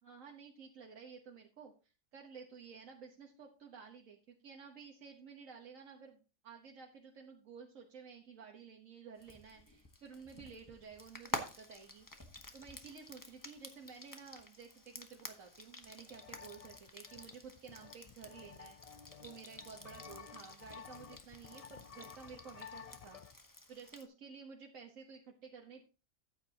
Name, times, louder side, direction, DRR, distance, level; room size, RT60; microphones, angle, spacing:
voice 1, 0.0-1.7 2.1-12.1 12.5-18.8 19.2-23.2 23.7-25.9, right 6 dB, 75° right, 0 dB, 1.6 m, -53 dB
Frying (food), 9.2-24.1, left 1 dB, 15° left, 1.1 m, -50 dB
sound 1, 15.6-15.7 15.9-23.4, left 7 dB, 50° left, 0.4 m, -54 dB
14.0 x 8.8 x 2.9 m, 0.32 s
omnidirectional pair, 1.4 m